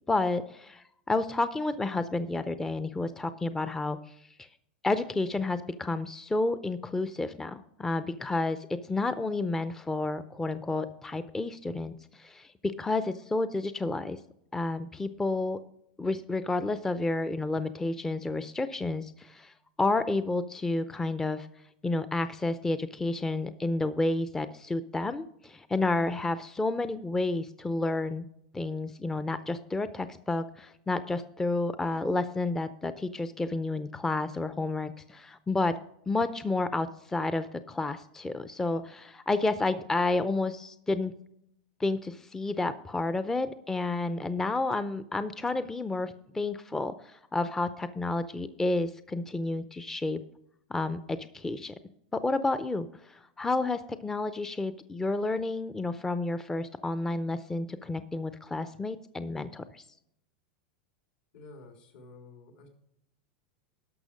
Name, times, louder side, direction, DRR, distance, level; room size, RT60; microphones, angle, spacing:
voice 1, 0.1-4.0 4.8-14.2 14.5-15.6 16.0-19.5 19.8-21.5 21.8-28.2 28.5-35.8 36.1-41.1 41.8-50.2 50.7-51.7 52.1-59.8, left 2 dB, 10° left, 12 dB, 0.5 m, -30 dB
voice 2, 61.3-62.7, left 3 dB, 75° left, 3 dB, 3.4 m, -50 dB
11.5 x 6.2 x 5.0 m, 0.75 s
supercardioid pair, 125°, 5 cm